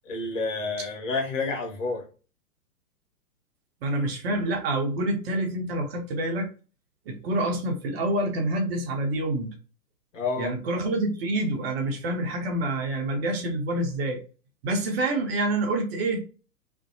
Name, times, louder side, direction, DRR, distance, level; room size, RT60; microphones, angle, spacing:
voice 1, 0.0-2.0 10.1-10.5, left 3 dB, 55° left, 1.2 m, -29 dB
voice 2, 3.8-6.5 7.1-9.6 10.4-14.2 14.6-16.2, right 1 dB, 40° right, 0.8 m, -27 dB
2.5 x 2.2 x 2.6 m
hypercardioid pair, 120°, 45 cm